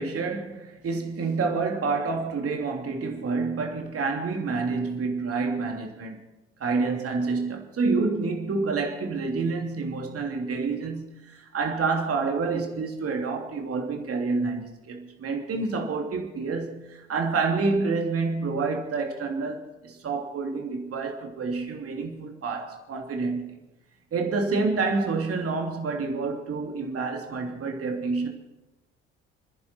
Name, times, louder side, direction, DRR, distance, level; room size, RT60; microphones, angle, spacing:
voice 1, 0.0-6.2 6.6-23.5 24.1-28.3, right 4 dB, 45° right, 3.0 m, -28 dB
29.5 x 10.5 x 4.6 m
figure-of-eight pair, 50°, 33 cm